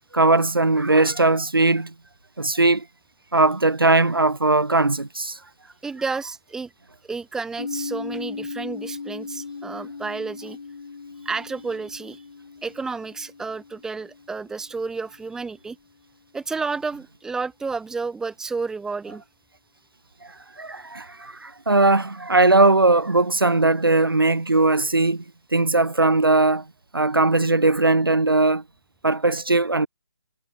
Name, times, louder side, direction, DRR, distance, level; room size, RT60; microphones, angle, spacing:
voice 1, 0.1-1.9 2.4-2.8 3.3-5.4 20.6-25.2 25.5-26.6 26.9-28.6 29.0-29.9, right 2 dB, 90° right, 2.6 m, -19 dB
voice 2, 5.8-6.7 7.1-10.6 11.2-12.2 12.6-15.8 16.3-19.2, right 4 dB, 5° right, 1.8 m, -31 dB
sound 1, 7.6-15.4, left 5 dB, 65° left, 4.3 m, -38 dB
figure-of-eight pair, 150°, 12 cm